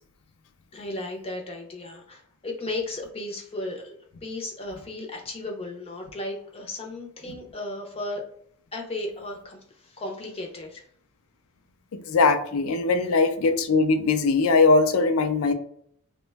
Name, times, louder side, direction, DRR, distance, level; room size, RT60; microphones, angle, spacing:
voice 1, 0.7-8.2 8.7-10.8, left 2 dB, 30° left, 1 dB, 0.6 m, -35 dB
voice 2, 11.9-15.5, left 3 dB, 75° left, 7 dB, 0.4 m, -21 dB
2.9 x 2.1 x 3.3 m, 0.63 s
head